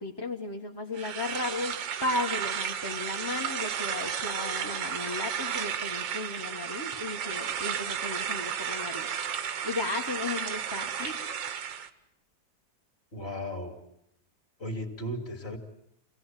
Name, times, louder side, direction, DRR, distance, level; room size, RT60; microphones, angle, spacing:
voice 1, 0.0-9.1 9.6-11.2, left 2 dB, 15° left, 0 dB, 1.4 m, -35 dB
sound 1, 0.9-11.9, right 8 dB, 80° right, 1.8 m, -33 dB
voice 2, 13.1-13.8 14.6-15.6, equal, 35° left, 5 dB, 2.9 m, -35 dB
26.0 x 17.5 x 9.2 m, 0.78 s
omnidirectional pair, 2.0 m